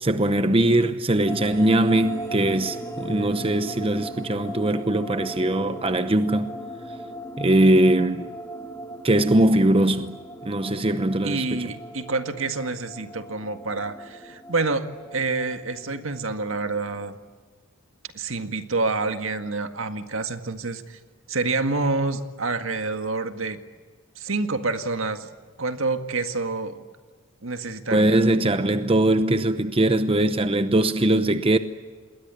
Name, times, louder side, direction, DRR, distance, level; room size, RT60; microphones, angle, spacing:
voice 1, 0.0-6.6 7.4-8.3 9.0-10.2 10.4-11.7 27.9-31.6, right 1 dB, 25° right, 0.9 m, -21 dB
sound 1, 1.3-17.1, right 1 dB, 15° left, 3.1 m, -38 dB
voice 2, 11.2-14.9 15.1-17.2 18.1-21.0 21.3-23.6 24.2-25.3 25.6-26.8 27.4-28.3, right 3 dB, 75° right, 1.9 m, -27 dB
28.0 x 21.5 x 8.4 m
head